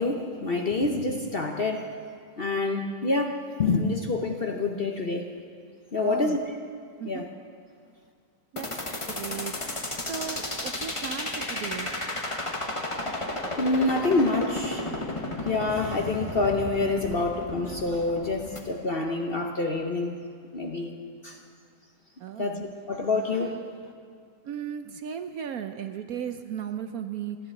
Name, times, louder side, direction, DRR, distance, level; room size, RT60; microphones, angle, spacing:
voice 1, 0.0-1.9 2.4-5.3 5.9-6.6 7.0-7.3 13.0-20.2 20.5-21.0 21.2-21.4 22.4-23.6, left 3 dB, 45° left, 2 dB, 0.8 m, -27 dB
voice 2, 5.9-6.4 7.0-7.2 8.5-9.6 10.1-11.9 22.2-22.6 24.4-27.4, right 8 dB, 65° right, 8 dB, 1.0 m, -36 dB
sound 1, 8.6-18.6, left 2 dB, 20° left, 1.3 m, -33 dB
15.0 x 11.0 x 8.3 m, 2.2 s
omnidirectional pair, 1.9 m